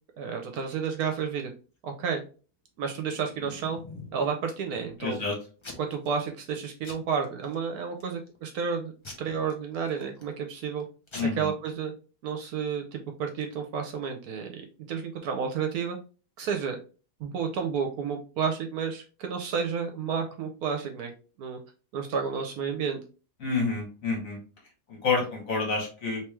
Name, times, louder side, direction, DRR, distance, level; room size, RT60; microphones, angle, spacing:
voice 1, 0.2-1.5 1.8-2.2 2.8-3.8 4.1-5.2 5.8-8.9 9.2-10.9 11.2-11.9 12.2-16.0 16.4-16.8 17.2-21.1 21.4-21.6 21.9-23.0, right 6 dB, 70° right, 4 dB, 1.1 m, -31 dB
Packing tape duct tape / Tearing, 3.0-4.2 4.7-5.2 5.6-6.1 6.4-6.6 6.8-7.5 8.0-8.4 9.0-10.3 10.8-10.9 11.1-11.2, left 3 dB, 35° left, 0.4 m, -45 dB
voice 2, 5.0-5.4 11.1-11.5 23.4-24.4 24.9-26.2, left 4 dB, 55° left, -2 dB, 1.7 m, -28 dB
3.1 x 3.1 x 3.3 m, 0.36 s
omnidirectional pair, 1.7 m